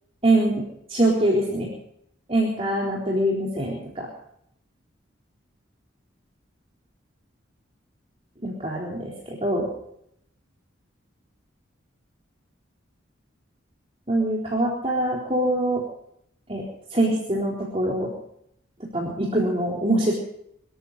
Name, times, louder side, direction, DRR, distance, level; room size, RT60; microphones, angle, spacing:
voice 1, 0.2-0.5 0.9-1.7 2.3-4.1 8.4-9.7 14.1-15.8 16.5-16.6 16.9-18.1 18.9-20.1, right 1 dB, 30° right, -3 dB, 3.9 m, -23 dB
24.5 x 13.5 x 4.2 m, 0.72 s
head